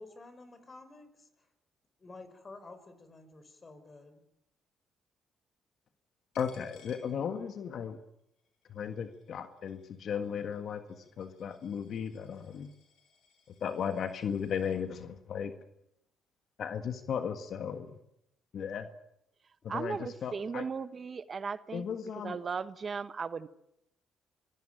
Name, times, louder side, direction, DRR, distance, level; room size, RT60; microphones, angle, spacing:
voice 1, 0.0-1.5 2.0-4.2, left 3 dB, 35° left, 5.2 m, -51 dB
Coin (dropping), 6.3-7.8 8.2-14.8, left 6 dB, 85° left, 4.9 m, -64 dB
voice 2, 6.4-8.0 8.7-12.7 13.6-15.5 16.6-18.0 18.5-18.9 19.6-20.7 21.7-22.4, left 7 dB, 65° left, 1.7 m, -36 dB
voice 3, 19.7-21.8 22.2-23.5, right 5 dB, 45° right, 1.0 m, -36 dB
25.0 x 16.5 x 9.0 m
supercardioid pair, 70°, 0 cm